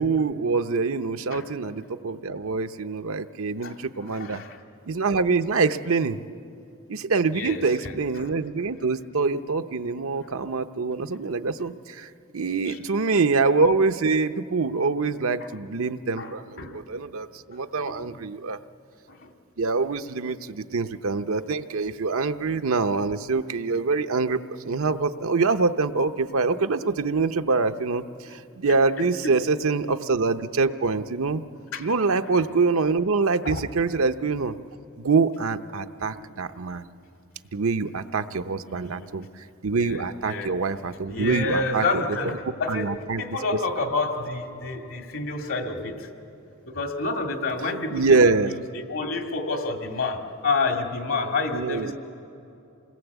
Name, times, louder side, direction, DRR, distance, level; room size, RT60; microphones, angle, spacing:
voice 1, 0.0-4.4 4.9-6.2 6.9-18.6 19.6-31.4 31.8-34.6 35.0-36.8 37.5-41.8 42.7-43.4 47.9-48.5 51.5-51.9, right 4 dB, 75° right, 9 dB, 0.8 m, -25 dB
voice 2, 4.1-4.6 7.3-7.9 12.7-12.8 13.1-13.2 16.2-16.8 17.9-18.1 19.1-19.3 29.0-29.3 31.7-31.9 33.4-33.6 38.5-39.2 39.7-40.5 41.1-46.1 46.7-51.9, left 3 dB, 70° left, 4 dB, 2.3 m, -29 dB
27.5 x 19.5 x 8.2 m, 2.8 s
head